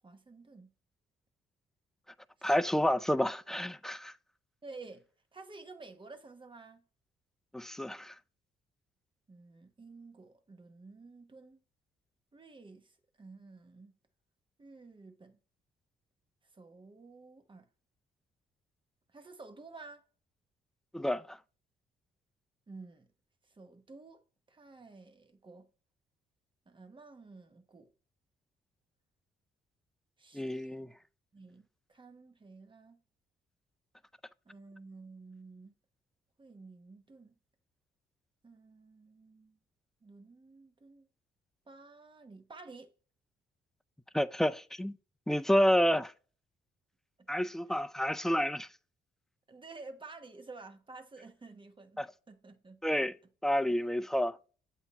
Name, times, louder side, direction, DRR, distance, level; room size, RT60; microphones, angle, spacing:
voice 1, 0.0-0.7 2.4-2.5 4.6-6.8 9.3-11.6 12.3-14.0 14.6-15.4 16.5-17.7 19.1-20.0 22.7-23.1 23.4-24.2 24.5-25.7 26.7-27.9 30.2-30.9 31.3-33.0 34.4-35.7 36.4-37.4 38.4-39.6 40.0-41.1 41.7-42.9 47.2-47.8 49.5-52.8 53.7-53.8, right 3 dB, 25° right, 1.1 m, -52 dB
voice 2, 2.4-4.1 7.5-8.1 20.9-21.4 30.3-30.9 44.1-45.0 45.3-46.1 47.3-48.7 52.0-52.1 52.8-53.1 53.4-54.4, equal, ahead, 0.3 m, -29 dB
8.0 x 2.8 x 5.2 m
cardioid pair, 90°, 20 cm